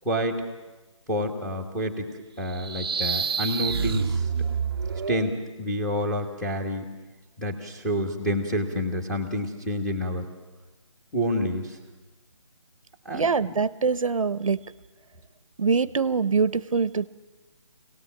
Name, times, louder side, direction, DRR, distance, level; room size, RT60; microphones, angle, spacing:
voice 1, 0.0-0.4 1.1-2.1 2.4-4.2 5.1-5.3 5.6-6.9 7.4-10.2 11.1-11.8 13.0-13.3, equal, 5° left, -4 dB, 1.2 m, -28 dB
sound 1, 2.5-5.3, right 6 dB, 45° right, 0.6 m, -28 dB
voice 2, 13.1-14.6 15.6-17.1, right 5 dB, 80° right, 17 dB, 0.9 m, -24 dB
25.5 x 18.0 x 7.3 m, 1.2 s
hypercardioid pair, 170°, 17 cm